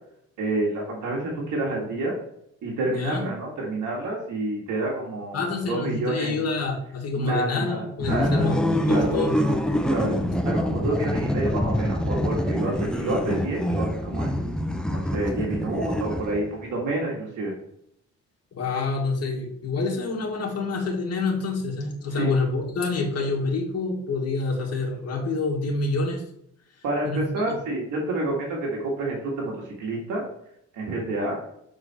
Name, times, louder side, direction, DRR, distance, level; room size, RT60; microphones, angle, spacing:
voice 1, 0.4-2.1 2.6-6.5 7.2-8.5 8.9-9.1 9.9-14.4 14.9-17.5 22.1-22.3 26.8-30.2 30.7-31.4, right 2 dB, 80° right, -3 dB, 1.9 m, -28 dB
voice 2, 2.9-3.2 5.3-9.4 18.5-26.2 27.0-27.6, left 3 dB, 55° left, -1 dB, 1.9 m, -27 dB
sound 1, 8.0-16.6, equal, 5° left, 0.7 m, -25 dB
6.8 x 4.4 x 4.3 m, 0.72 s
cardioid pair, 90°, 30 cm